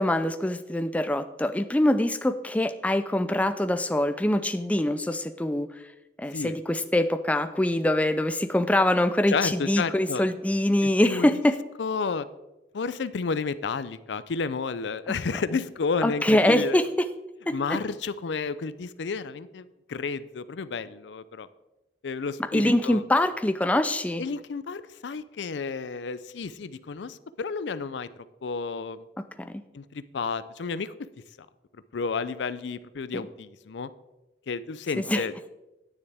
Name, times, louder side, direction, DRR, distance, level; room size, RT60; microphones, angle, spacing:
voice 1, 0.0-5.7 6.2-11.6 16.0-17.1 17.5-17.8 22.5-24.2 29.4-29.6 35.0-35.2, left 1 dB, 10° left, 9 dB, 0.3 m, -24 dB
voice 2, 9.3-10.2 10.8-11.3 11.8-12.3 12.7-16.8 17.5-21.5 22.0-23.0 24.2-28.1 28.4-29.0 29.7-30.9 31.9-33.9 34.5-35.5, left 4 dB, 80° left, 15 dB, 0.5 m, -31 dB
9.9 x 9.4 x 3.5 m, 1.0 s
head